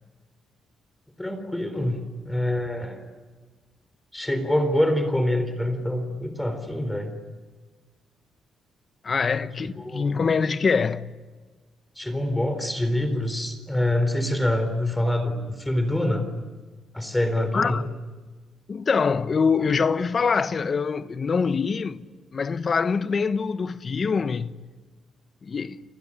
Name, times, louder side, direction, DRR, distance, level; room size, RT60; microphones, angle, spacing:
voice 1, 1.2-3.0 4.1-7.1 9.8-10.1 12.0-16.3 16.9-17.9, left 1 dB, 10° left, 3.9 m, -25 dB
voice 2, 9.0-11.2 17.5-17.8 18.7-24.6 25.4-25.8, left 5 dB, 40° left, 1.1 m, -24 dB
30.0 x 20.0 x 10.0 m
cardioid pair, 90°, 0 cm